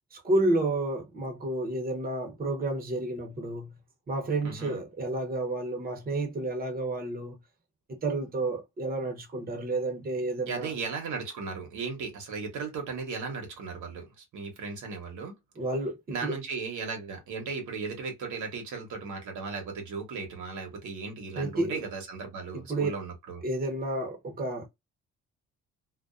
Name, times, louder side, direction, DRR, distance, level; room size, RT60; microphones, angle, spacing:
voice 1, 0.1-3.8 4.1-7.4 7.9-10.7 15.6-16.4 21.4-21.8 22.5-22.9 23.4-24.7, right 2 dB, 30° right, 0.8 m, -30 dB
voice 2, 4.4-4.8 10.5-15.3 16.1-23.4, right 4 dB, 75° right, 1.0 m, -36 dB
2.4 x 2.1 x 2.4 m
cardioid pair, 90°, 30 cm